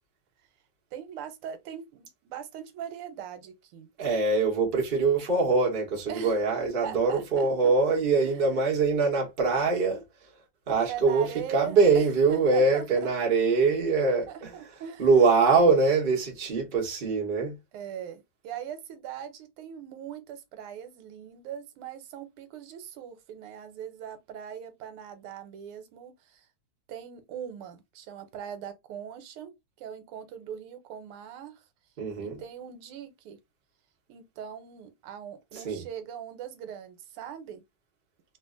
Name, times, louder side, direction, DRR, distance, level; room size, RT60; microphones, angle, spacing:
voice 1, 0.9-3.9 6.1-6.4 6.8-7.7 8.2-8.3 10.9-13.1 14.3-15.1 17.7-26.5 26.9-29.5 29.8-31.6 32.2-33.4 34.1-37.6, right 9 dB, 90° right, 1.6 m, -40 dB
voice 2, 4.0-10.0 10.7-14.6 15.0-17.6 32.0-32.4 35.5-35.8, right 4 dB, 40° right, 0.8 m, -23 dB
3.2 x 2.6 x 2.4 m
omnidirectional pair, 2.4 m